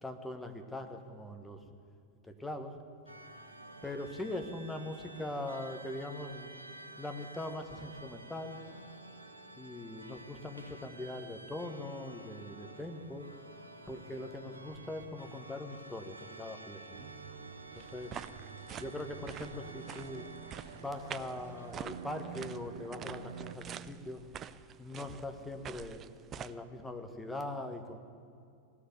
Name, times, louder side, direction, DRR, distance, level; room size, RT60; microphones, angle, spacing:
voice 1, 0.0-1.6 2.2-2.7 3.8-6.5 7.0-8.6 9.6-13.3 13.9-17.1 17.7-18.1 18.8-20.3 20.7-24.2 24.8-26.0 26.3-28.0, left 1 dB, 5° left, 5 dB, 1.2 m, -41 dB
sound 1, 3.1-22.5, right 2 dB, 85° right, 0.9 m, -51 dB
sound 2, 16.9-23.6, right 7 dB, 55° right, 1.0 m, -49 dB
sound 3, 17.8-26.5, right 9 dB, 30° right, 0.4 m, -47 dB
17.0 x 6.7 x 9.5 m, 2.4 s
figure-of-eight pair, 90°, 0 cm